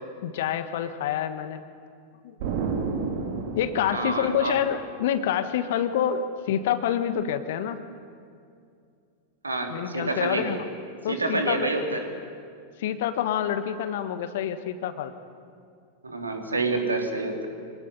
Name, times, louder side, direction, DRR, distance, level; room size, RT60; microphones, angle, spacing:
voice 1, 0.2-1.6 2.2-2.6 3.5-7.8 9.7-10.6 11.0-11.7 12.8-15.1, left 9 dB, 55° left, 10 dB, 1.4 m, -27 dB
Explosion, 2.4-5.1, right 5 dB, 50° right, 2.6 m, -31 dB
voice 2, 3.9-4.6 9.4-10.6 11.1-12.0 16.0-17.5, right 3 dB, 80° right, 3 dB, 3.5 m, -28 dB
25.0 x 18.5 x 9.9 m, 2.4 s
figure-of-eight pair, 90°, 0 cm